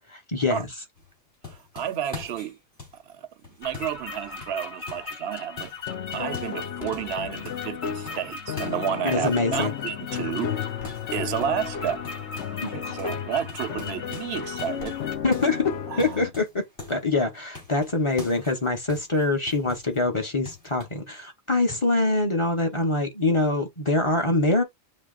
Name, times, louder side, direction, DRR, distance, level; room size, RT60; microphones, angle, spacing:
voice 1, 0.1-0.7 9.0-9.7 12.6-12.9 15.2-16.6 16.9-24.6, left 2 dB, 30° left, 0.9 m, -24 dB
sound 1, 1.0-5.2 5.6-6.7 6.9-7.7 8.1-9.8 10.1-12.7 13.0-13.2 13.5-17.1 17.5-20.0 20.4-20.9, left 4 dB, 65° left, 4.3 m, -43 dB
voice 2, 1.7-2.6 3.1-3.3 3.6-5.7 6.1-10.5 11.1-12.3 12.6-15.0 15.9-16.2, right 9 dB, 70° right, 0.8 m, -31 dB
sound 2, 3.6-15.2, left 5 dB, 45° left, 1.0 m, -39 dB
sound 3, 5.9-16.3, left 8 dB, 85° left, 1.0 m, -34 dB
7.1 x 2.9 x 2.4 m
omnidirectional pair, 1.1 m